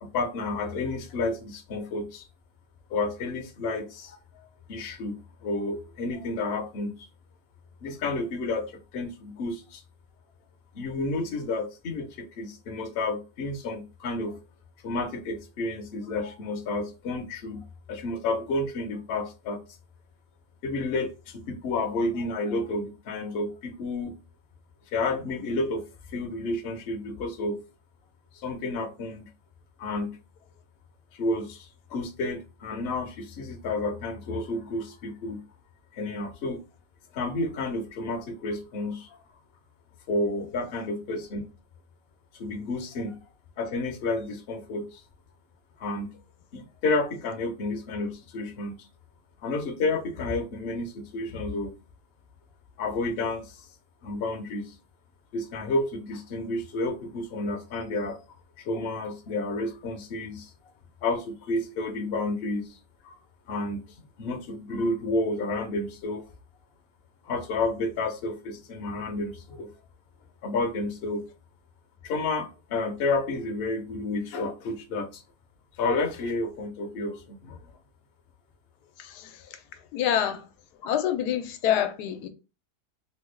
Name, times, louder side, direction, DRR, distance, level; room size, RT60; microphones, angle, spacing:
voice 1, 0.0-2.3 2.9-4.2 4.7-7.0 7.8-9.8 10.7-14.4 14.8-19.6 20.6-24.1 24.9-25.8 26.1-27.6 28.3-29.3 29.8-30.2 31.1-35.4 35.9-36.6 37.1-39.2 40.1-41.4 42.3-43.2 43.6-45.0 45.8-46.1 46.5-48.8 49.4-51.7 52.8-53.6 54.0-54.7 55.3-58.2 58.6-60.5 61.0-62.8 63.0-63.2 63.5-63.8 64.2-66.3 67.2-69.7 70.4-71.2 72.0-75.2 75.8-77.7, left 2 dB, 60° left, 0.7 m, -30 dB
voice 2, 79.0-79.6 79.9-80.5 80.8-82.3, left 10 dB, 90° left, 1.2 m, -27 dB
3.3 x 2.2 x 3.2 m
omnidirectional pair, 1.7 m